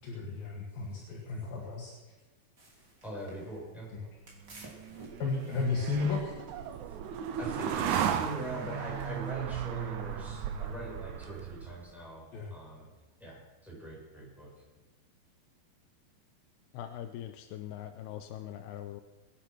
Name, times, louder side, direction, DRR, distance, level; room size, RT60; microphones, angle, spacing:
voice 1, 0.0-1.9 3.9-4.1 5.2-6.3 12.3-12.5, left 4 dB, 65° left, -2 dB, 3.7 m, -33 dB
sound 1, 2.6-9.3, right 2 dB, 25° right, 3.5 m, -57 dB
voice 2, 3.0-3.9 6.9-7.0 7.4-12.9 13.2-14.5, right 1 dB, ahead, -6 dB, 6.6 m, -42 dB
sound 2, 4.5-11.9, right 9 dB, 75° right, 1.8 m, -35 dB
voice 3, 16.7-19.0, left 11 dB, 85° left, 6 dB, 2.7 m, -42 dB
23.0 x 10.0 x 6.0 m, 1.2 s
omnidirectional pair, 4.6 m